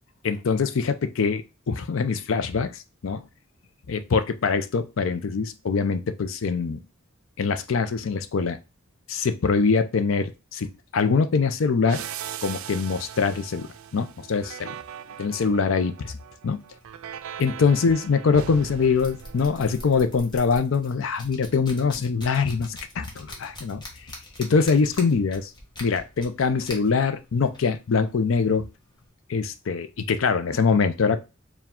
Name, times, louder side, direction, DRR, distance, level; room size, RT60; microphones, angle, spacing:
voice 1, 0.2-3.2 3.9-6.8 7.4-8.6 9.1-10.7 10.9-12.0 12.4-14.7 15.2-16.2 16.4-16.6 17.4-23.8 24.4-25.5 25.8-28.7 29.3-31.2, left 5 dB, 70° left, 10 dB, 0.5 m, -23 dB
sound 1, 11.8-20.3, right 9 dB, 90° right, 0.4 m, -40 dB
sound 2, 16.5-29.1, left 1 dB, 20° left, 1.0 m, -45 dB
4.6 x 2.2 x 3.6 m, 0.28 s
head